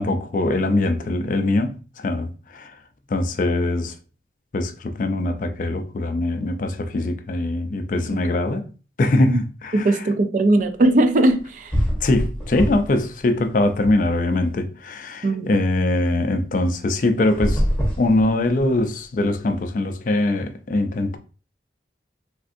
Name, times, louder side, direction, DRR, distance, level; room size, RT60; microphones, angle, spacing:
voice 1, 0.0-2.7 3.1-3.9 4.5-8.7 9.0-10.0 12.0-17.6 18.0-21.2, left 2 dB, 45° left, 0.4 m, -22 dB
voice 2, 9.7-11.8 15.2-15.5, right 1 dB, 45° right, 0.3 m, -19 dB
sound 1, 11.3-11.4 11.7-13.0 13.4-14.5 17.2-18.8, equal, 5° left, 0.9 m, -24 dB
3.4 x 2.5 x 2.4 m
head